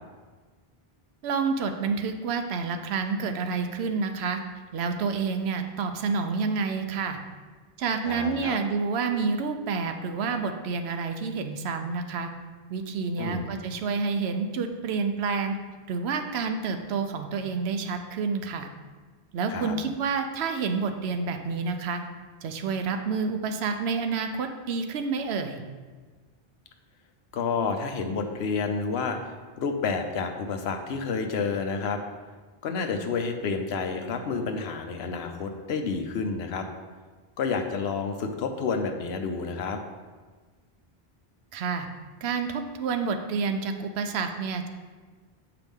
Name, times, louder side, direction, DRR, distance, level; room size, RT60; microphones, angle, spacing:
voice 1, 1.2-4.4 4.7-7.2 7.8-12.3 12.7-15.6 15.9-18.7 19.3-22.0 22.4-25.6 41.5-41.9 42.2-44.7, right 5 dB, 85° right, 7 dB, 0.9 m, -29 dB
voice 2, 8.1-8.6 13.2-13.5 19.5-19.8 27.3-32.0 32.6-36.7 37.4-39.8, left 5 dB, 85° left, 5 dB, 0.9 m, -30 dB
7.6 x 4.8 x 3.5 m, 1.4 s
omnidirectional pair, 1.0 m